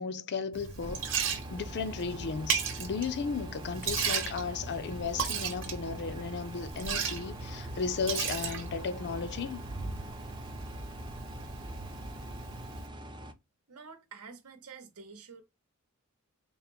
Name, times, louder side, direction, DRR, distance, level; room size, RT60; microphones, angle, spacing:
voice 1, 0.0-9.6, left 5 dB, 50° left, 0.5 m, -35 dB
Liquid, 0.5-12.9, right 6 dB, 60° right, 0.9 m, -36 dB
sound 1, 0.8-13.3, right 1 dB, 20° right, 0.4 m, -45 dB
voice 2, 13.7-15.4, right 5 dB, 85° right, 0.9 m, -48 dB
3.9 x 2.1 x 4.2 m
head